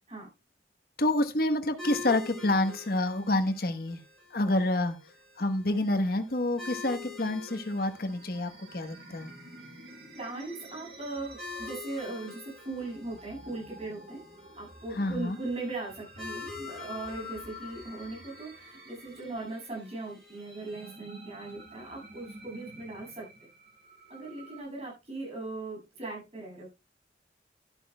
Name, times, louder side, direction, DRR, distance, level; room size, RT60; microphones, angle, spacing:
voice 1, 1.0-4.0 4.3-5.0 5.4-9.3 14.9-15.4, left 1 dB, 55° left, 8 dB, 1.1 m, -28 dB
sound 1, 1.8-20.9, left 4 dB, ahead, 5.8 m, -47 dB
sound 2, 7.5-24.6, left 1 dB, 65° right, 5.1 m, -49 dB
voice 2, 10.1-14.2 14.6-23.5 24.1-26.7, right 2 dB, 35° right, -2 dB, 6.6 m, -39 dB
12.0 x 11.5 x 2.2 m, 0.26 s
head